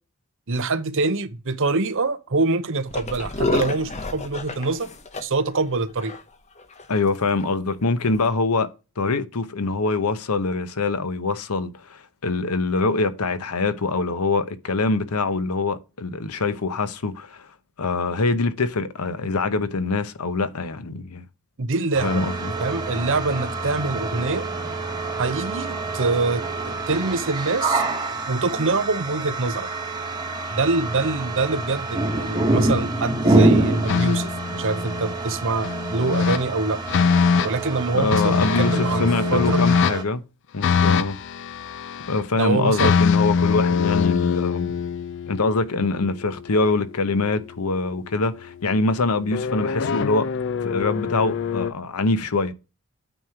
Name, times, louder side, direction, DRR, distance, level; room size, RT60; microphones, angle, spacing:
voice 1, 0.5-4.9 5.2-6.1 21.6-22.2 22.6-24.5 25.2-27.8 28.3-29.7 30.5-36.8 37.4-39.6 42.4-42.9, right 3 dB, 60° right, 0.8 m, -25 dB
sound 1, 2.9-5.2 5.5-5.6 6.0-6.2 6.6-6.8 7.4-7.5 8.1-8.3, left 2 dB, 30° left, 0.9 m, -29 dB
voice 2, 6.9-8.7 9.0-17.5 17.8-21.2 22.0-22.5 37.9-40.2 40.5-41.2 42.1-44.7 45.3-50.3 50.6-52.5, left 3 dB, 80° left, 0.9 m, -24 dB
sound 2, 21.9-40.0, right 2 dB, 20° right, 1.4 m, -26 dB
sound 3, 33.9-35.1 35.6-36.4 36.9-37.5 38.1-40.0 40.6-42.2 42.7-46.8 49.3-51.7, left 6 dB, 55° left, 0.4 m, -23 dB
9.0 x 3.1 x 4.9 m
head